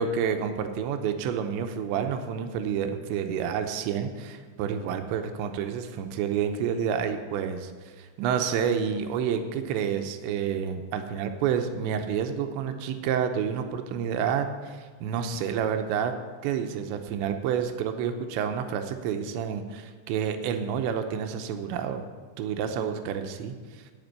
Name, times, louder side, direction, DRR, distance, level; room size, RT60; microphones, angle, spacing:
voice 1, 0.0-7.7 8.0-16.1 16.4-22.1 22.4-23.8, right 7 dB, 80° right, 7 dB, 2.8 m, -29 dB
15.0 x 5.3 x 9.1 m, 1.5 s
omnidirectional pair, 5.7 m